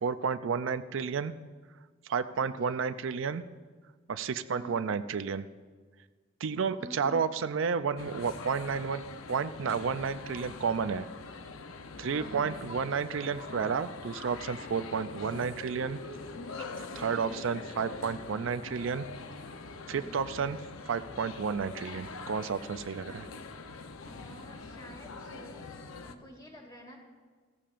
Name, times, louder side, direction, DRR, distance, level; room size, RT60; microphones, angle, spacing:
voice 1, 0.0-1.3 2.0-3.4 4.1-5.4 6.4-9.0 9.3-11.1 12.0-16.0 16.8-19.0 19.9-20.6 20.9-23.1, right 6 dB, 70° right, 12 dB, 0.4 m, -31 dB
voice 2, 2.4-2.8 4.5-4.8 6.8-7.2 12.1-12.5 15.2-15.5 16.9-17.4 19.9-20.3 23.0-23.3 24.0-27.0, equal, 20° left, 0 dB, 2.4 m, -48 dB
sound 1, 8.0-26.2, left 3 dB, 85° left, 0.8 m, -44 dB
17.0 x 14.0 x 2.5 m, 1.5 s
head